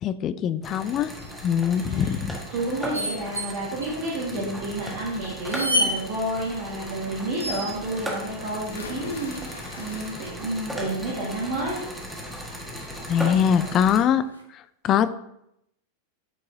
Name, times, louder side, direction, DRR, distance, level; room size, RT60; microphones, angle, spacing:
voice 1, 0.0-1.1 1.4-2.4 13.1-14.2 14.5-15.1, left 9 dB, 30° left, 13 dB, 0.4 m, -22 dB
sound 1, 0.6-14.0, equal, 5° right, 1.5 m, -37 dB
sound 2, 1.2-1.5 2.9-3.5 3.8-3.9 4.7-4.8 5.4-5.9 7.4-7.9 9.9-10.4 11.9-12.0 12.2-12.4 13.1-13.9 14.3-14.4, equal, 85° right, 0.9 m, -29 dB
voice 2, 1.7-11.8, right 1 dB, 50° right, -6 dB, 1.7 m, -30 dB
sound 3, 8.7-10.7 11.1-11.6 13.0-13.1 13.5-13.6, left 4 dB, 70° left, 0.9 m, -42 dB
9.0 x 4.6 x 2.7 m, 0.80 s
figure-of-eight pair, 90°, 0 cm